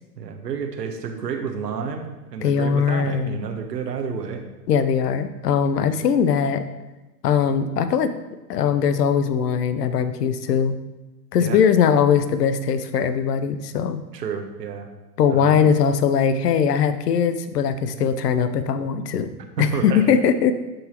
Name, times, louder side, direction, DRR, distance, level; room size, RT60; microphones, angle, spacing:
voice 1, 0.2-4.4 11.4-11.6 14.1-14.9 15.3-15.6 19.6-20.1, right 6 dB, 90° right, 5 dB, 1.1 m, -30 dB
voice 2, 2.4-3.4 4.7-6.6 7.2-8.1 8.5-10.7 11.3-14.0 15.2-19.3 19.6-20.5, left 7 dB, 75° left, 11 dB, 0.8 m, -20 dB
11.5 x 4.0 x 2.9 m, 1.1 s
hypercardioid pair, 120°, 48 cm